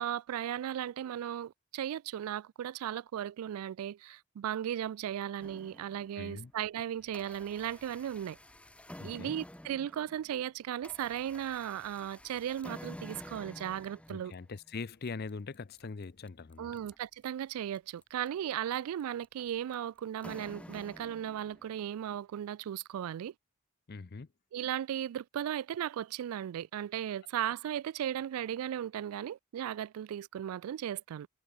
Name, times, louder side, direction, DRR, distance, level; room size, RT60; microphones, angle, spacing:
voice 1, 0.0-8.4 9.0-14.3 16.6-23.3 24.5-31.3, right 10 dB, 85° right, 0.3 m, -36 dB
sound 1, 5.4-6.3 6.8-21.9, left 1 dB, 5° left, 0.8 m, -51 dB
voice 2, 6.2-6.5 9.0-9.3 14.1-16.7 23.9-24.3, left 4 dB, 45° left, 0.5 m, -42 dB
sound 2, 14.8-22.3, equal, 20° left, 5.9 m, -82 dB
head